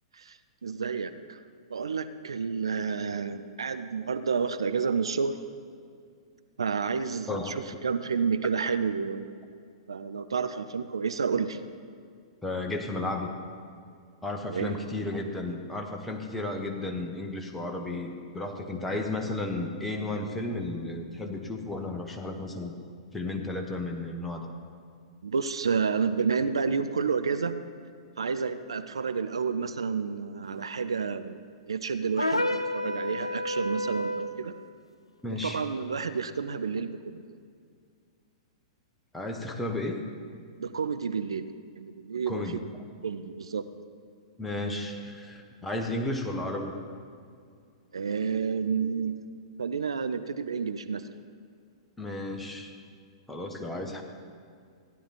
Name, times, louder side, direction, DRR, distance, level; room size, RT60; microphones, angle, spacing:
voice 1, 0.1-1.4 1.7-5.4 6.6-9.3 9.9-11.6 14.4-14.8 25.2-27.6 28.2-31.4 31.7-34.5 35.4-37.2 40.6-41.5 41.8-42.6 43.0-43.7 47.9-49.2 49.6-51.1, right 5 dB, 70° right, 11 dB, 0.5 m, -30 dB
voice 2, 12.4-13.3 14.2-22.7 23.1-24.5 35.2-35.6 39.1-40.1 42.3-42.6 44.4-46.7 52.0-52.7 53.3-54.0, left 2 dB, 5° left, 2 dB, 1.1 m, -33 dB
sound 1, 32.2-34.4, left 1 dB, 90° left, 0.5 m, -29 dB
15.0 x 10.0 x 4.2 m, 2.2 s
figure-of-eight pair, 105°, 3 cm